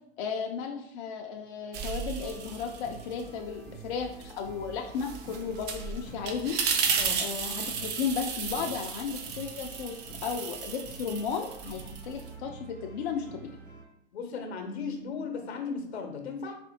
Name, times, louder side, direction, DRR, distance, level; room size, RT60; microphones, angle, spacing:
voice 1, 0.2-6.6 7.2-13.5, left 6 dB, 55° left, 2 dB, 0.5 m, -34 dB
sound 1, 1.7-3.3 3.7-12.3, right 6 dB, 30° right, 0.5 m, -34 dB
sound 2, 2.2-13.8, right 2 dB, 85° right, 1.2 m, -49 dB
voice 2, 14.1-16.6, left 5 dB, 75° left, 4 dB, 0.9 m, -36 dB
4.2 x 2.7 x 2.7 m, 0.72 s
hypercardioid pair, 100°, 32 cm